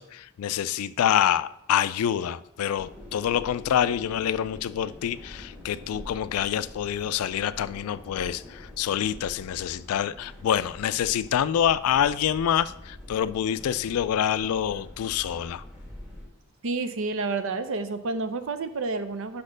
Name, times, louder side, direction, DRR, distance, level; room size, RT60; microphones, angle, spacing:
voice 1, 0.0-15.6, left 9 dB, 85° left, 0.3 m, -26 dB
sound 1, 2.8-16.3, left 1 dB, 5° right, 1.5 m, -45 dB
voice 2, 16.6-19.4, right 3 dB, 65° right, 0.6 m, -29 dB
5.7 x 4.3 x 6.3 m
head